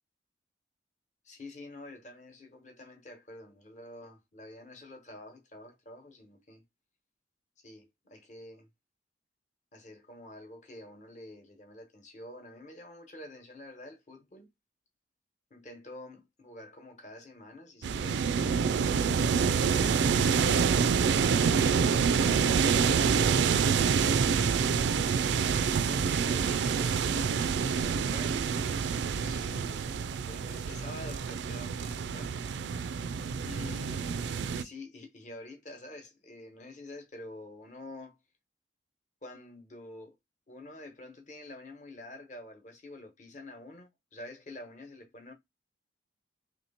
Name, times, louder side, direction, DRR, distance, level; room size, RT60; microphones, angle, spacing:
voice 1, 1.2-6.6 7.6-8.7 9.7-14.5 15.5-18.3 21.1-24.1 24.6-28.4 29.1-29.9 30.3-32.3 33.4-38.2 39.2-40.2 40.5-45.3, left 1 dB, 40° left, 1.1 m, -48 dB
sound 1, 17.8-34.6, right 6 dB, 70° right, 0.4 m, -27 dB
3.2 x 2.9 x 4.1 m
head